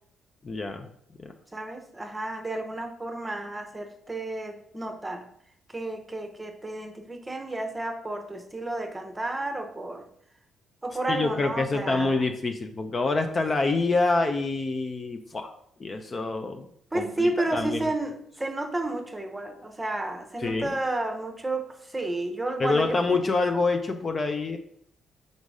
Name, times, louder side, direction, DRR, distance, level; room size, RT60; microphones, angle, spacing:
voice 1, 0.4-0.9 1.2-1.3 11.1-15.5 15.8-16.7 16.9-17.9 20.4-20.8 22.6-24.6, left 3 dB, 35° left, 6 dB, 0.6 m, -26 dB
voice 2, 1.5-5.3 5.7-10.1 10.8-12.2 16.9-22.9, right 2 dB, 15° right, 5 dB, 0.9 m, -31 dB
5.3 x 3.9 x 4.8 m, 0.70 s
cardioid pair, 90°, 0 cm